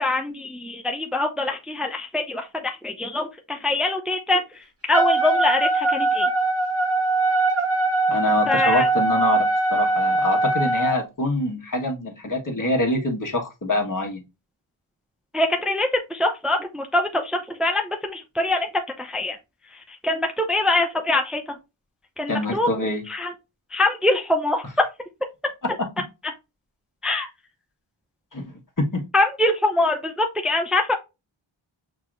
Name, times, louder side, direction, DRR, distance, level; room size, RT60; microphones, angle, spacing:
voice 1, 0.0-6.3 8.5-8.9 15.3-18.7 19.0-19.4 19.7-21.6 22.2-22.7 23.1-23.3 23.7-24.7 27.0-27.3 29.1-30.9, left 2 dB, ahead, 0.6 m, -24 dB
Wind instrument woodwind instrument, 4.9-11.0, right 2 dB, 30° right, 1.4 m, -21 dB
voice 2, 8.1-14.2 22.3-23.0 25.8-25.9 28.3-29.0, left 2 dB, 40° left, 1.5 m, -25 dB
6.7 x 2.9 x 2.5 m
cardioid pair, 45°, 49 cm